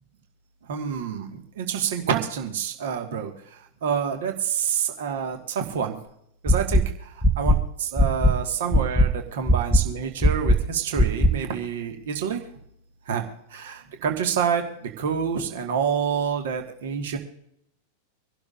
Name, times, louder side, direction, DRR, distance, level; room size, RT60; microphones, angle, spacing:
voice 1, 0.7-1.2 1.6-3.3 3.8-4.3 5.0-5.4 5.7-5.9 6.5-6.8 7.4-7.6 7.9-9.1 9.4-12.4 13.1-13.2 14.0-14.6 15.0-17.2, right 7 dB, 55° right, 5 dB, 1.6 m, -27 dB
sound 1, 6.5-6.8 7.2-7.6 8.0-8.3 8.7-9.1 9.5-9.8 10.2-10.6 11.0-11.3, left 1 dB, 5° left, 0.8 m, -17 dB
25.0 x 11.5 x 2.5 m, 0.74 s
figure-of-eight pair, 90°, 0 cm